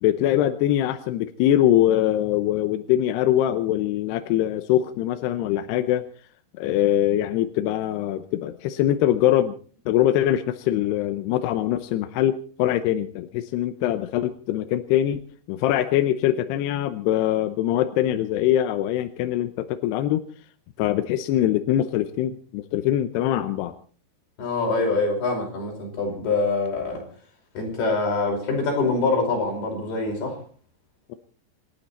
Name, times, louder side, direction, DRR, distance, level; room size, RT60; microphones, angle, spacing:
voice 1, 0.0-6.0 6.6-9.5 9.9-15.2 15.5-20.2 20.8-23.7 31.1-31.2, left 12 dB, 75° left, 2.6 m, -23 dB
voice 2, 24.4-27.1 27.6-30.4, left 3 dB, 55° left, 7.0 m, -24 dB
27.0 x 12.0 x 4.2 m
omnidirectional pair, 5.4 m